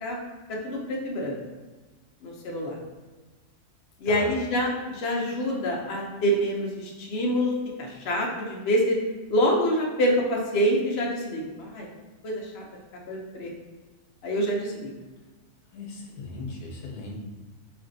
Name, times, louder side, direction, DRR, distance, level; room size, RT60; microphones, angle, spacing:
voice 1, 0.6-1.4 2.2-2.8 4.0-9.0 9.3-11.9 12.2-12.6 13.1-13.5 14.2-14.9, equal, 50° left, -2 dB, 0.9 m, -26 dB
voice 2, 15.7-17.2, left 3 dB, 80° left, -1 dB, 1.4 m, -38 dB
3.7 x 3.3 x 3.9 m, 1.3 s
omnidirectional pair, 1.6 m